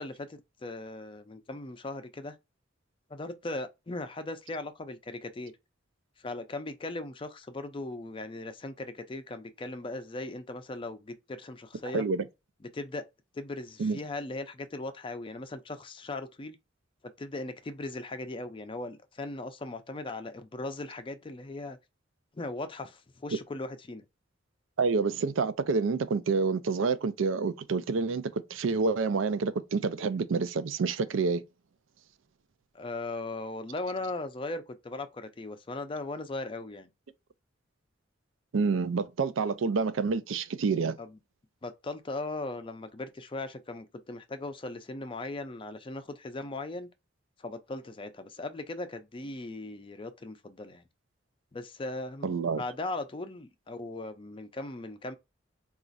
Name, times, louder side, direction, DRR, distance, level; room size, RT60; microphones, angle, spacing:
voice 1, 0.0-2.4 3.1-5.5 6.2-12.1 12.7-13.0 13.3-16.6 17.2-21.8 22.3-24.0 32.7-36.9 41.0-41.2 41.6-46.9 47.4-50.8 51.5-55.2, left 2 dB, 25° left, 0.4 m, -38 dB
voice 2, 11.9-12.2 13.8-14.0 24.8-31.4 38.5-41.0 52.2-52.6, right 4 dB, 90° right, 0.4 m, -28 dB
4.0 x 2.4 x 2.5 m
head